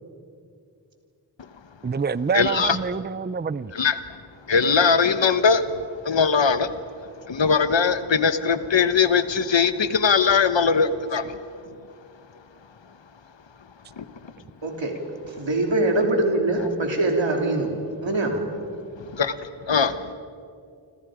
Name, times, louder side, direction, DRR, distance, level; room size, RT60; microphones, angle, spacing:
voice 1, 1.8-3.7, right 6 dB, 25° right, 18 dB, 0.5 m, -26 dB
voice 2, 2.3-2.8 3.7-4.0 4.5-6.7 7.3-11.4 14.0-14.1 19.0-19.3 19.7-20.1, left 5 dB, 80° left, 11 dB, 1.2 m, -20 dB
voice 3, 14.6-15.0 15.3-17.7 18.0-18.5, right 2 dB, 85° right, 2 dB, 3.2 m, -23 dB
29.0 x 25.5 x 5.0 m, 2.4 s
wide cardioid pair, 55°, 44 cm